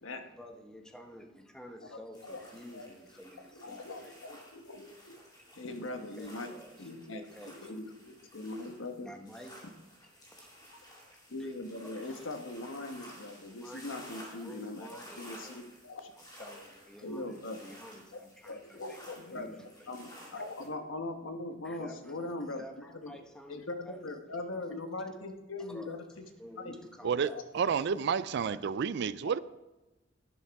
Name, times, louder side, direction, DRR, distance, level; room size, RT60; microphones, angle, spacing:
voice 1, 0.3-4.2 5.2-7.6 9.0-9.6 10.2-10.6 11.4-11.5 11.8-12.2 13.5-15.6 16.2-19.0 19.3-20.3 21.6-24.0 24.5-24.8 25.6-25.9 26.4-27.4 27.9-28.0 28.5-28.6, equal, 5° left, 1.0 m, -51 dB
voice 2, 1.8-2.4 2.7-2.9 3.5-5.2 5.5-7.2 7.5-9.1 11.3-16.1 17.0-17.6 18.1-18.2 18.4-19.5 19.9-22.6 23.0-23.2 23.5-26.2 26.6-26.8 27.2-27.4 29.2-29.4, left 2 dB, 85° left, 1.2 m, -41 dB
sound 1, 2.1-20.7, equal, 20° left, 2.5 m, -54 dB
voice 3, 27.0-29.4, right 6 dB, 60° right, 0.4 m, -30 dB
11.0 x 10.5 x 3.5 m
head